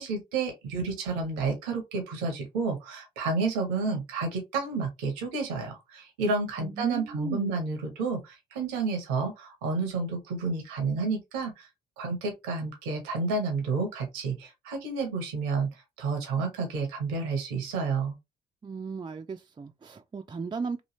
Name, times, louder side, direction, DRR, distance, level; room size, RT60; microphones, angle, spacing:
voice 1, 0.0-11.7 12.0-15.7 16.0-18.2, right 4 dB, 90° right, 0.8 m, -30 dB
voice 2, 6.6-7.5 18.6-20.8, right 5 dB, 25° right, 0.4 m, -36 dB
3.0 x 2.4 x 3.0 m
hypercardioid pair, 45°, 21 cm